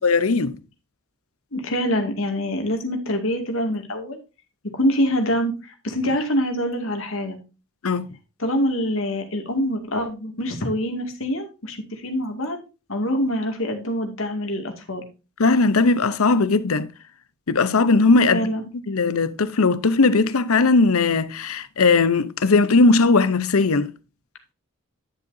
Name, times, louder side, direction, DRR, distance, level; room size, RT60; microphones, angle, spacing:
voice 1, 0.0-0.6 7.8-8.1 15.4-16.9 17.5-18.5 18.9-23.9, left 3 dB, 90° left, 0.8 m, -18 dB
voice 2, 1.5-4.2 4.7-7.4 8.4-12.6 12.9-15.1 18.3-18.6, equal, 65° left, 2.3 m, -25 dB
11.0 x 7.4 x 2.7 m
head